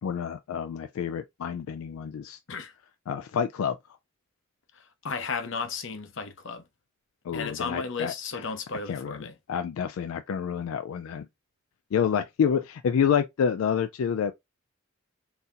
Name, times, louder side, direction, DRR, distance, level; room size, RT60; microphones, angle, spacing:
voice 1, 0.0-2.4 3.1-3.8 7.2-8.1 8.9-11.3 11.9-14.3, left 7 dB, 85° left, 0.3 m, -28 dB
voice 2, 4.7-6.6 7.3-9.3, left 4 dB, 65° left, 0.7 m, -34 dB
3.9 x 2.8 x 2.4 m
head